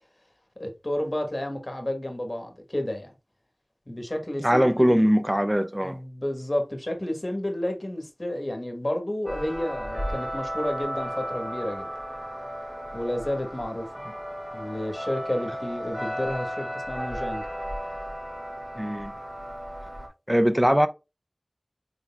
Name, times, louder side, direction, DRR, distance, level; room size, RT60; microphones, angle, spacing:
voice 1, 0.6-3.1 3.9-5.0 5.8-11.9 12.9-14.0 14.5-17.5, left 1 dB, 40° left, 1.3 m, -31 dB
voice 2, 4.4-6.0 18.8-19.1 20.3-20.9, equal, 15° right, 0.5 m, -21 dB
sound 1, 9.3-20.1, equal, 30° right, 2.0 m, -34 dB
4.4 x 3.9 x 2.3 m
wide cardioid pair, 45°, 0 cm